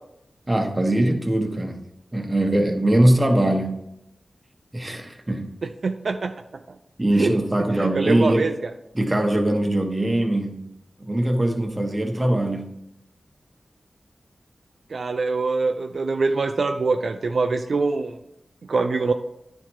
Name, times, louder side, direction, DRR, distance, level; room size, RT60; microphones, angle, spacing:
voice 1, 0.5-1.8 2.1-3.8 4.7-5.6 7.0-8.5 8.9-12.7, right 1 dB, 25° right, 3 dB, 1.3 m, -22 dB
voice 2, 5.8-6.3 7.1-7.3 7.8-8.7 14.9-18.1 18.7-19.1, right 3 dB, 75° right, 6 dB, 0.4 m, -24 dB
10.0 x 4.4 x 4.7 m, 0.83 s
cardioid pair, 55°, 0 cm